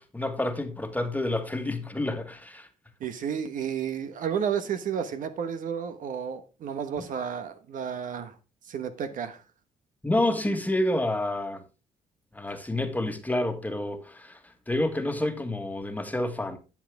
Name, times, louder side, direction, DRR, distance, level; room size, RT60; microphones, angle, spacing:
voice 1, 0.0-2.7 10.0-11.6 12.3-14.4 14.7-16.6, left 1 dB, 10° left, 1.6 m, -28 dB
voice 2, 3.0-8.3 8.7-9.4, right 8 dB, 70° right, 1.2 m, -32 dB
11.5 x 7.5 x 3.5 m
cardioid pair, 90°, 14 cm